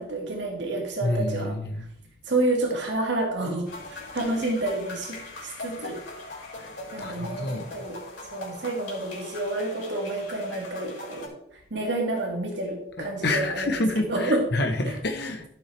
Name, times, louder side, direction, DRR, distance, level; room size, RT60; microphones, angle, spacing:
voice 1, 0.0-1.6 2.3-6.0 6.9-8.0 8.3-11.3 11.7-14.5 14.8-15.0, right 2 dB, 65° right, 2.0 m, -29 dB
voice 2, 1.0-1.9 6.6-6.7 7.0-7.7 13.0-15.5, left 2 dB, 55° left, 0.9 m, -28 dB
sound 1, 3.7-11.3, left 2 dB, 80° left, 4.1 m, -41 dB
13.0 x 7.0 x 3.3 m
head